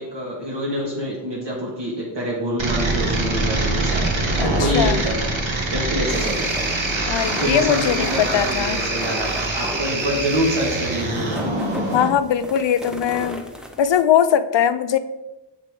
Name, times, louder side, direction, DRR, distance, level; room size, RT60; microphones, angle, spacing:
voice 1, 0.0-4.1 4.6-6.5 7.4-11.4, equal, 65° right, -5 dB, 1.5 m, -26 dB
sound 1, 2.6-12.1, right 2 dB, 90° right, 1.1 m, -24 dB
voice 2, 4.4-5.0 7.1-8.8 11.9-13.4 13.8-15.0, left 9 dB, 75° left, 12 dB, 0.6 m, -20 dB
sound 2, 6.1-14.0, equal, ahead, 0.6 m, -36 dB
6.9 x 4.1 x 4.6 m, 1.0 s
wide cardioid pair, 105°, 45 cm